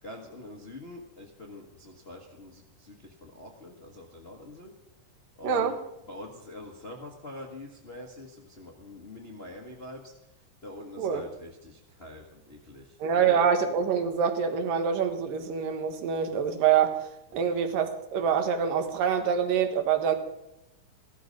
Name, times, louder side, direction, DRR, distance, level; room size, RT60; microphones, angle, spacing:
voice 1, 0.0-4.7 5.4-5.8 6.1-10.1 10.6-13.4 17.3-17.4, left 1 dB, 40° left, 1 dB, 0.9 m, -44 dB
voice 2, 13.0-16.9 17.3-20.2, right 7 dB, 85° right, 7 dB, 3.0 m, -25 dB
16.0 x 13.0 x 5.2 m, 0.89 s
omnidirectional pair, 3.8 m